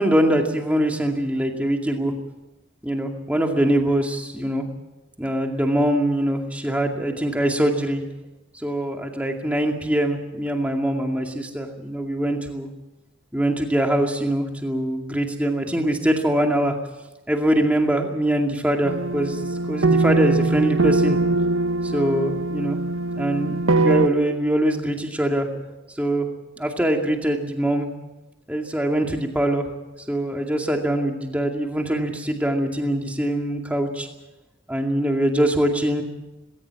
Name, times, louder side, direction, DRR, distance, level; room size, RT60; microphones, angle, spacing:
voice 1, 0.0-2.1 2.8-4.7 5.2-8.0 8.5-12.7 13.3-16.8 17.3-19.4 19.7-21.2 21.8-22.8 23.1-25.5 26.0-26.3 26.6-27.9 28.5-29.7 30.1-34.1 34.7-36.0, right 1 dB, 5° right, 2 dB, 2.2 m, -23 dB
sound 1, 18.9-24.1, right 3 dB, 85° right, 1.2 m, -22 dB
19.5 x 18.0 x 7.6 m, 1.0 s
head